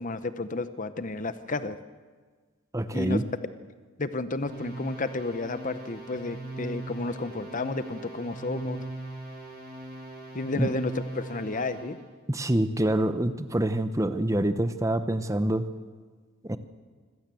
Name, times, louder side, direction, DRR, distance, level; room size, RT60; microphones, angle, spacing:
voice 1, 0.0-1.8 2.9-3.2 4.0-8.8 10.3-12.0, left 3 dB, 35° left, 12 dB, 0.8 m, -32 dB
voice 2, 2.7-3.2 10.6-10.7 12.3-15.6 16.4-16.6, right 1 dB, 15° right, 11 dB, 0.9 m, -26 dB
sound 1, 4.5-12.0, right 2 dB, 45° right, 6.5 m, -40 dB
25.0 x 16.5 x 7.7 m, 1.5 s
head